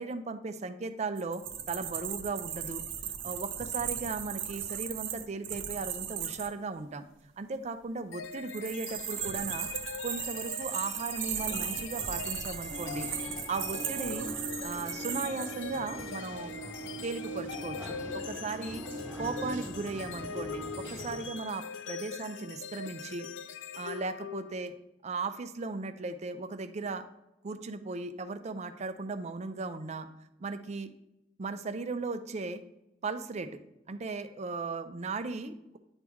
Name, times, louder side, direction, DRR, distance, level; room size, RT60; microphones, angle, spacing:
voice 1, 0.0-2.8 3.2-7.0 7.4-9.7 10.0-14.3 14.6-16.5 17.0-18.8 19.2-23.3 23.8-24.7 25.0-27.1 27.4-30.1 30.4-30.9 31.4-32.6 33.0-33.6 33.9-35.8, right 3 dB, 35° right, 9 dB, 0.4 m, -37 dB
sound 1, 1.2-6.5 8.3-15.5, right 9 dB, 85° right, 0.7 m, -37 dB
sound 2, 8.1-24.8, left 6 dB, 75° left, 0.4 m, -42 dB
sound 3, 12.7-21.2, right 1 dB, 10° right, 1.4 m, -42 dB
9.6 x 3.5 x 3.0 m, 0.88 s
head